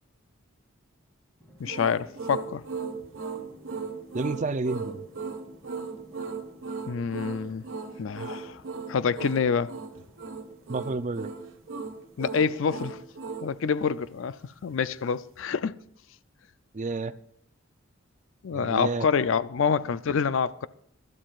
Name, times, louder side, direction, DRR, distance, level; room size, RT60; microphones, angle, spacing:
Drum, 1.4-13.8, equal, 10° left, 2.8 m, -57 dB
voice 1, 1.6-2.6 6.9-7.6 8.0-8.6 8.9-9.7 12.2-13.0 13.4-15.8 18.4-20.7, left 6 dB, 65° left, 0.4 m, -27 dB
sound 1, 1.6-13.5, right 4 dB, 70° right, 1.4 m, -37 dB
voice 2, 4.1-5.1 10.7-11.3 16.7-17.1 18.5-19.1, right 3 dB, 35° right, 0.5 m, -30 dB
23.5 x 12.0 x 2.4 m
head